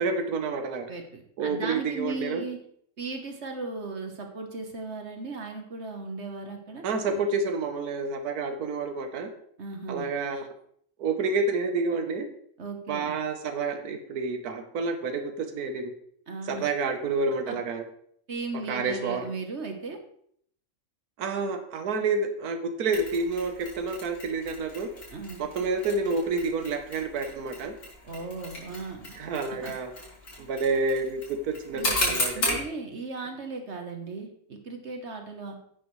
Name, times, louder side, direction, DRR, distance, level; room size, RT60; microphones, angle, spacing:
voice 1, 0.0-0.9 1.4-2.4 6.8-9.3 9.9-10.5 11.0-12.3 12.9-15.9 16.4-17.8 18.7-19.3 21.2-24.9 25.4-27.7 29.2-29.9 30.4-32.6, right 3 dB, 85° right, 6 dB, 1.5 m, -29 dB
voice 2, 0.9-2.6 3.0-7.2 9.6-10.1 12.6-13.1 16.3-16.7 17.5-17.6 18.3-20.0 25.1-25.4 28.0-29.2 29.6-29.7 31.7-35.6, right 3 dB, 50° right, 4 dB, 1.4 m, -37 dB
Mechanisms, 22.9-32.7, left 1 dB, 85° left, 3.6 m, -35 dB
11.0 x 8.2 x 3.2 m, 0.65 s
omnidirectional pair, 1.6 m